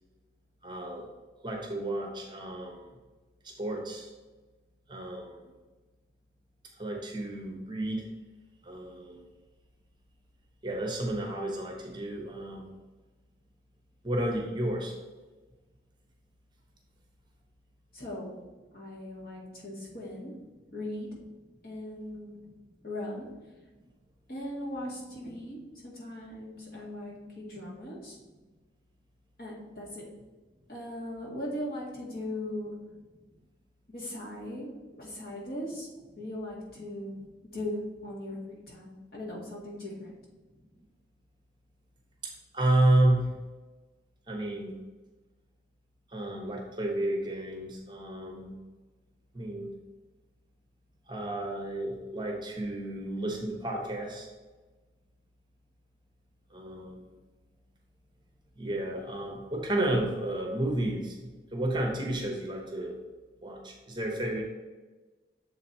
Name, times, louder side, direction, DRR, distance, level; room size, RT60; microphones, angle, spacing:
voice 1, 0.6-1.1 1.4-2.9 3.4-4.1 4.9-5.5 6.8-8.1 8.6-9.2 10.6-12.7 14.0-14.9 42.2-43.3 44.3-44.8 46.1-48.5 49.3-49.7 51.1-54.3 56.5-57.1 58.6-63.0 63.4-64.4, right 1 dB, 25° right, 1 dB, 0.9 m, -31 dB
voice 2, 17.9-18.3 18.7-20.3 20.7-21.1 21.6-22.4 22.8-23.3 24.3-25.6 25.8-28.2 29.4-30.0 30.7-32.7 33.9-34.7 35.0-35.9 36.2-37.2 37.5-40.1, left 1 dB, 55° left, -4 dB, 1.9 m, -38 dB
7.1 x 4.1 x 4.2 m, 1.2 s
head